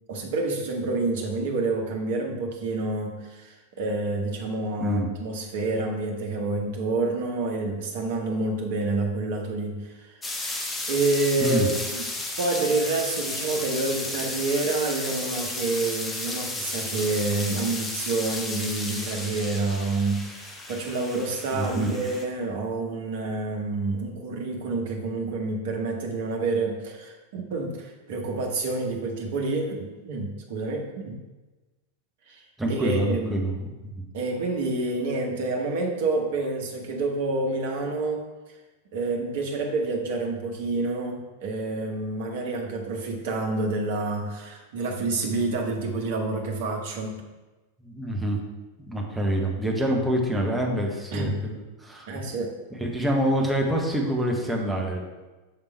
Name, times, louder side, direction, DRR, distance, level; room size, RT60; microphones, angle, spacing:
voice 1, 0.1-10.1 10.9-12.1 12.4-31.2 32.3-32.4 32.7-33.3 34.1-38.3 38.9-47.2 51.1-51.4 52.1-52.5, right 3 dB, 50° right, 1 dB, 1.0 m, -28 dB
voice 2, 4.8-5.1 11.4-11.7 21.5-21.9 32.6-33.9 47.8-48.4 48.9-51.5 51.8-52.1 52.8-55.0, right 1 dB, 5° right, -1 dB, 1.0 m, -26 dB
sound 1, 10.2-22.2, left 2 dB, 15° left, 0.8 m, -33 dB
6.7 x 3.6 x 4.4 m, 1.2 s
figure-of-eight pair, 90°, 0 cm